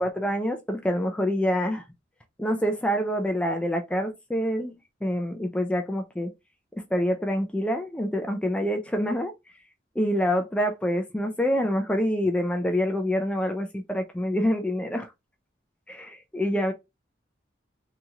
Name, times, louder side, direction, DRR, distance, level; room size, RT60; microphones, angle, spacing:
voice 1, 0.0-1.8 2.4-4.7 5.0-6.3 6.7-9.3 10.0-15.1 15.9-16.7, equal, 5° left, 0.3 m, -26 dB
2.8 x 2.7 x 2.4 m
head